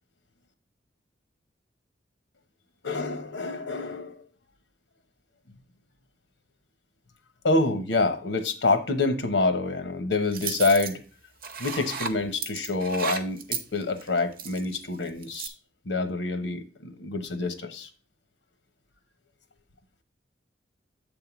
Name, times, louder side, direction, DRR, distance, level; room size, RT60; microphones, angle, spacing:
voice 1, 2.8-4.2 7.4-11.0 11.6-15.5 15.9-17.9, left 3 dB, 85° left, 1.0 m, -27 dB
sound 1, 10.3-10.9 11.4-12.1 12.4-14.8 15.2-15.5, right 6 dB, 55° right, 0.8 m, -33 dB
7.6 x 3.6 x 5.9 m
head